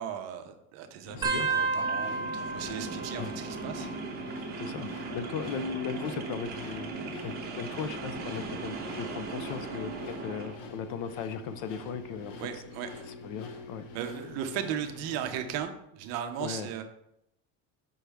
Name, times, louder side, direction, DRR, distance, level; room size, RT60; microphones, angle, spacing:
voice 1, 0.0-3.9 12.4-13.1 13.9-16.8, right 9 dB, 45° right, 7 dB, 0.7 m, -36 dB
sound 1, 1.1-15.6, left 3 dB, 75° left, 1.1 m, -46 dB
voice 2, 1.1-1.5 3.2-3.3 4.6-6.9 7.2-12.5 13.2-13.8 16.4-16.7, left 6 dB, 55° left, 11 dB, 0.5 m, -37 dB
sound 2, 1.2-4.4 4.7-5.3 6.3-7.7 8.4-8.7 9.9-10.3 11.8-11.9, right 4 dB, 10° right, 0.3 m, -34 dB
sound 3, 1.7-10.6, right 4 dB, 25° right, 1.0 m, -39 dB
6.0 x 5.4 x 3.4 m, 0.78 s
cardioid pair, 175°, 36 cm